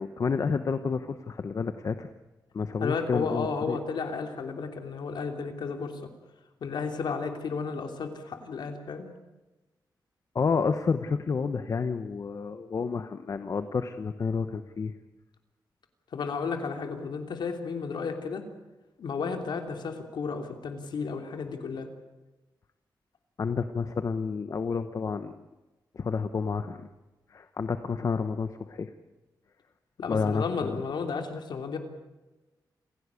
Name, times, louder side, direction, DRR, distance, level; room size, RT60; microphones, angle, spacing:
voice 1, 0.0-2.1 2.5-3.8 10.3-14.9 23.4-25.4 25.9-26.9 27.3-28.9 30.1-30.8, left 5 dB, 45° left, 10 dB, 1.0 m, -30 dB
voice 2, 2.8-6.1 6.6-9.1 16.1-18.4 19.0-21.9 30.0-31.8, left 5 dB, 80° left, 5 dB, 3.1 m, -33 dB
28.0 x 16.5 x 8.4 m, 1.1 s
wide cardioid pair, 140°, 8 cm